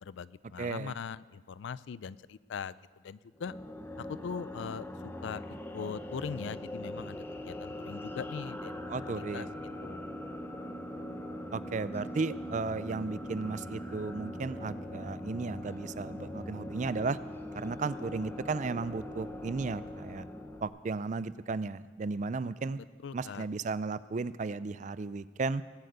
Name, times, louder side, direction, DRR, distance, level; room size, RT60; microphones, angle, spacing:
voice 1, 0.0-2.7 3.0-3.5 4.0-4.9 5.2-5.4 5.7-9.5 9.8-10.1 23.0-23.5, left 6 dB, 75° left, 19 dB, 0.4 m, -41 dB
voice 2, 0.6-0.9 8.9-9.5 11.5-17.2 17.5-20.3 20.6-22.8 23.1-25.6, right 4 dB, 40° right, 17 dB, 0.4 m, -35 dB
sound 1, 3.4-20.7, left 1 dB, 10° left, 0.8 m, -41 dB
19.0 x 7.8 x 8.0 m, 1.6 s
head